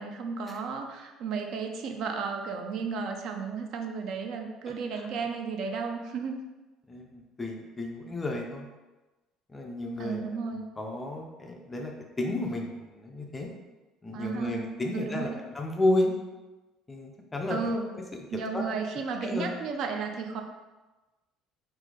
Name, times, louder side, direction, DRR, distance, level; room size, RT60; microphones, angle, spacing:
voice 1, 0.0-6.4 10.0-10.6 14.1-14.7 14.9-15.4 17.5-17.9 18.3-20.4, right 5 dB, 45° right, 4 dB, 0.4 m, -33 dB
voice 2, 6.9-8.7 9.5-10.2 10.5-13.5 14.0-16.1 16.9-18.6 19.2-19.5, left 1 dB, 10° left, 1 dB, 0.4 m, -32 dB
3.9 x 2.7 x 4.7 m, 1.1 s
cardioid pair, 175°, 0 cm